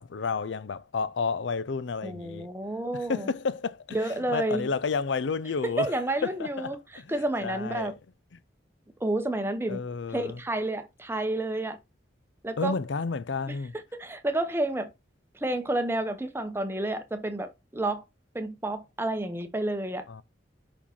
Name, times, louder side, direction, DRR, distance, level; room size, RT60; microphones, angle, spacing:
voice 1, 0.0-2.5 2.9-4.0 4.3-5.9 6.2-7.9 9.7-10.4 12.6-13.7 20.1-20.2, left 4 dB, 70° left, 0.5 m, -31 dB
voice 2, 2.0-3.3 3.9-4.7 5.8-7.9 9.0-9.8 10.1-11.8 12.4-12.7 13.5-13.6 14.0-14.9 15.3-18.0 18.3-20.0, right 1 dB, 10° right, 0.8 m, -30 dB
5.5 x 4.9 x 4.2 m
head